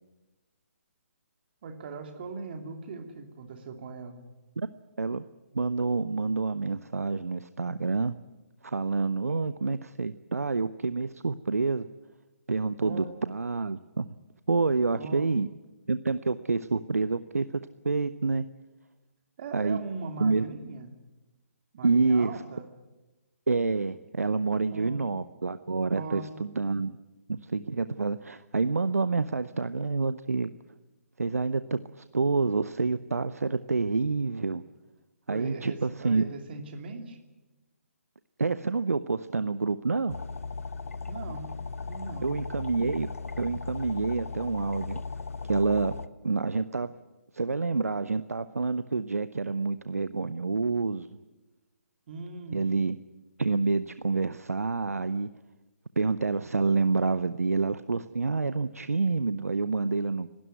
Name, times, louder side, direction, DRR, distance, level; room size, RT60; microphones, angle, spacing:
voice 1, 1.6-4.2 9.3-9.4 12.8-13.1 15.0-15.3 19.4-21.0 21.7-22.6 24.7-25.0 25.9-26.3 35.3-37.2 41.1-41.5 41.8-42.4 52.1-52.6, right 4 dB, 40° right, 6 dB, 3.0 m, -40 dB
voice 2, 5.5-8.1 8.6-11.9 12.5-14.1 14.5-15.5 15.9-18.4 19.5-19.8 20.2-20.4 21.8-22.4 23.5-27.0 27.3-30.5 31.2-34.6 35.3-36.2 38.4-40.2 42.2-43.1 43.4-45.0 45.4-45.9 46.2-46.9 47.3-51.1 52.5-53.0 53.4-55.3 56.0-60.3, right 4 dB, 75° right, 13 dB, 0.8 m, -28 dB
sound 1, 40.1-46.1, left 4 dB, 70° left, 0.9 m, -37 dB
29.5 x 12.5 x 9.3 m, 1.1 s
figure-of-eight pair, 140°, 8 cm